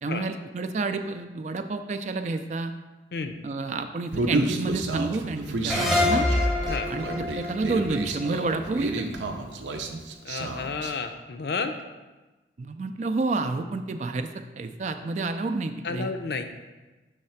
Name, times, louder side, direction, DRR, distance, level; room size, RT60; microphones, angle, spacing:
voice 1, 0.0-2.7 3.4-6.3 6.9-9.2 12.6-14.3 14.6-16.1, right 3 dB, 40° right, 8 dB, 0.3 m, -29 dB
Human voice, 4.1-10.9, right 2 dB, 80° right, 0.6 m, -31 dB
sound 1, 5.7-9.0, left 2 dB, ahead, 0.7 m, -26 dB
voice 2, 10.2-11.7 15.8-16.4, left 4 dB, 60° left, 7 dB, 0.5 m, -31 dB
6.4 x 3.2 x 5.7 m, 1.2 s
head